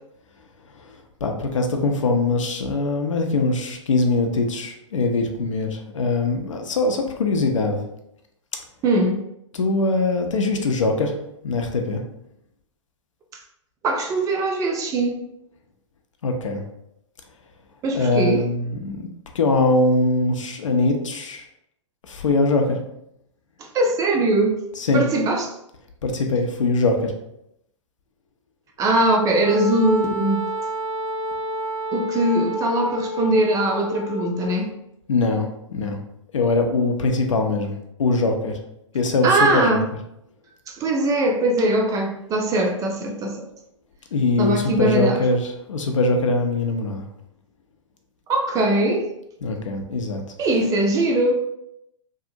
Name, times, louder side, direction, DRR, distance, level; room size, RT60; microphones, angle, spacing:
voice 1, 0.7-7.8 9.5-11.2 11.4-12.0 16.2-16.6 17.9-19.1 19.3-21.5 22.0-22.8 24.8-25.0 26.0-27.1 35.1-36.0 36.3-37.7 38.0-38.6 38.9-39.8 44.1-47.1 49.4-50.2, left 3 dB, 75° left, 4 dB, 0.5 m, -22 dB
voice 2, 8.8-9.2 13.8-15.2 17.8-18.4 23.6-24.6 24.9-25.5 28.8-30.4 31.9-34.7 39.2-39.8 40.7-43.4 44.4-45.2 48.3-49.1 50.4-51.3, right 2 dB, 20° right, 2 dB, 0.4 m, -21 dB
Wind instrument woodwind instrument, 29.4-34.6, equal, 75° right, 1.1 m, -29 dB
2.7 x 2.4 x 2.7 m, 0.81 s
figure-of-eight pair, 105°, 16 cm